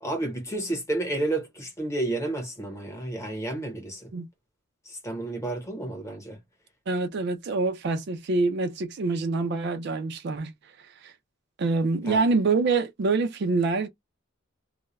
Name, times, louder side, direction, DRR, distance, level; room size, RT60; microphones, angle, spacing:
voice 1, 0.0-4.1 4.9-6.4 12.1-12.2, right 2 dB, 15° left, 0.9 m, -31 dB
voice 2, 6.9-10.5 11.0-11.1 11.6-13.9, right 3 dB, 55° right, 0.4 m, -25 dB
2.3 x 2.1 x 3.0 m
head